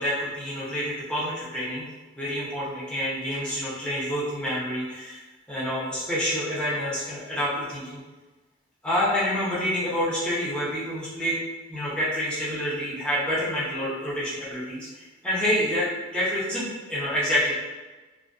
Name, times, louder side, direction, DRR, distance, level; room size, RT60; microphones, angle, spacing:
voice 1, 0.0-1.9 2.2-5.2 5.5-8.0 8.8-11.4 11.7-17.5, equal, 5° left, -9 dB, 0.6 m, -28 dB
2.3 x 2.2 x 2.4 m, 1.2 s
head